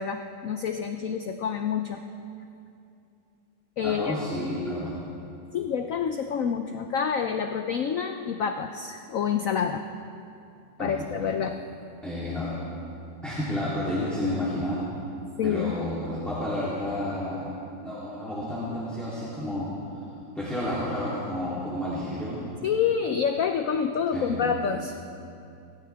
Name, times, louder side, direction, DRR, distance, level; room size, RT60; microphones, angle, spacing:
voice 1, 0.0-2.0 3.8-4.1 5.5-9.9 10.8-11.6 15.4-15.8 22.6-25.1, left 7 dB, 70° left, 6 dB, 0.7 m, -28 dB
voice 2, 3.8-4.9 10.8-11.1 12.0-12.5 13.2-14.8 15.4-17.5 17.8-20.0 20.3-22.4 24.1-24.5, left 1 dB, ahead, -10 dB, 3.1 m, -31 dB
26.0 x 14.0 x 3.5 m, 2.6 s
omnidirectional pair, 2.1 m